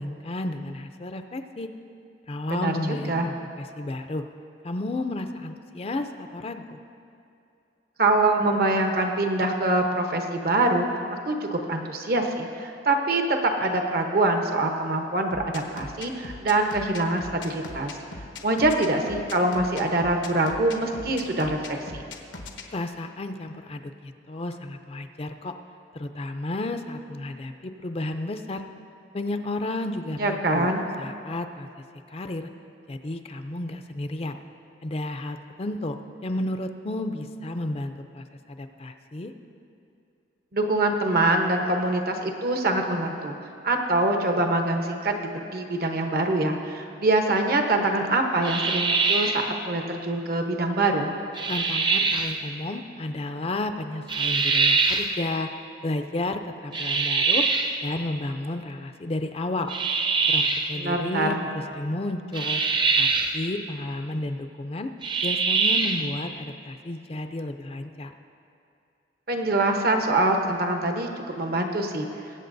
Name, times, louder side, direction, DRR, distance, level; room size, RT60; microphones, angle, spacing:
voice 1, 0.0-1.7 2.3-4.2 4.6-6.8 22.7-25.5 25.9-28.7 29.1-30.7 31.0-31.7 32.1-32.5 32.9-34.4 34.8-36.0 36.2-39.3 51.5-55.5 55.8-57.5 57.8-59.7 60.3-61.4 61.8-62.6 63.0-63.1 63.3-64.9 65.2-68.1, left 2 dB, 35° left, 7 dB, 0.4 m, -32 dB
voice 2, 2.5-3.3 8.0-10.8 11.2-17.9 18.4-22.0 30.2-30.8 40.5-43.3 43.6-51.1 60.7-61.4 69.3-72.1, right 2 dB, 55° right, 4 dB, 0.9 m, -24 dB
sound 1, 15.3-22.6, left 2 dB, 85° left, 0.9 m, -39 dB
sound 2, 48.4-49.5 51.3-52.3 54.1-55.1 56.7-57.8 59.7-60.7 62.3-63.4 65.0-66.1, right 4 dB, 25° right, 0.6 m, -23 dB
21.5 x 8.3 x 2.6 m, 2.6 s
head